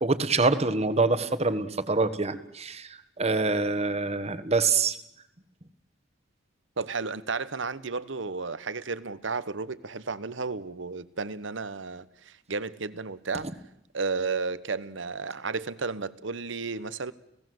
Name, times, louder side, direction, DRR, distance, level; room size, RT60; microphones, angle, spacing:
voice 1, 0.0-2.9 3.2-5.0, right 3 dB, 35° right, 1.4 m, -25 dB
voice 2, 6.8-13.5 13.9-17.1, right 4 dB, 75° right, 1.1 m, -33 dB
30.0 x 17.5 x 7.9 m
head